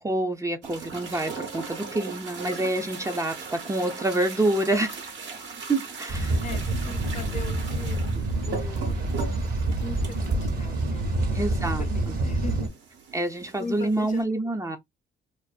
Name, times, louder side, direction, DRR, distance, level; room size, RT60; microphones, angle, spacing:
voice 1, 0.0-5.0 5.7-6.4 11.3-11.8 13.1-14.8, right 2 dB, 15° right, 0.5 m, -27 dB
sound 1, 0.6-14.2, right 5 dB, 70° right, 1.2 m, -40 dB
sound 2, 6.1-12.7, right 2 dB, 50° right, 1.0 m, -27 dB
voice 2, 6.4-8.1 8.5-9.0 9.7-12.8 13.6-14.4, left 4 dB, 40° left, 0.6 m, -39 dB
2.5 x 2.5 x 2.3 m
cardioid pair, 90°, 20 cm